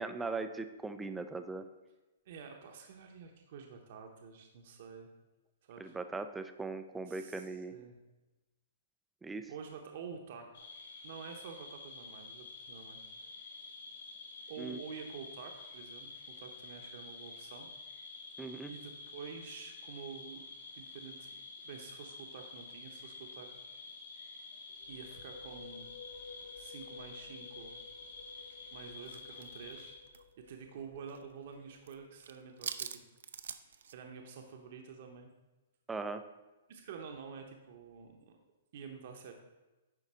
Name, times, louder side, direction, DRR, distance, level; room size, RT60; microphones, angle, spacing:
voice 1, 0.0-1.7 5.8-7.8 9.2-9.5 14.6-14.8 18.4-18.7 35.9-36.2, right 3 dB, 5° right, 9 dB, 0.3 m, -39 dB
voice 2, 2.2-5.1 5.6-6.0 7.1-8.0 9.4-10.7 11.0-13.0 14.5-17.7 18.7-20.5 20.8-23.7 24.9-25.9 26.6-27.8 28.7-30.0 30.4-33.0 33.9-35.3 36.7-38.4 38.7-39.3, right 6 dB, 40° right, 3 dB, 0.8 m, -49 dB
sound 1, 10.5-29.9, left 3 dB, 50° left, 2.1 m, -49 dB
sound 2, 24.7-32.3, left 5 dB, 30° left, 0.8 m, -55 dB
sound 3, 29.1-31.2 31.5-31.9 32.2-33.9, right 7 dB, 75° right, 0.5 m, -45 dB
9.7 x 3.8 x 6.1 m, 1.1 s
hypercardioid pair, 175°, 0 cm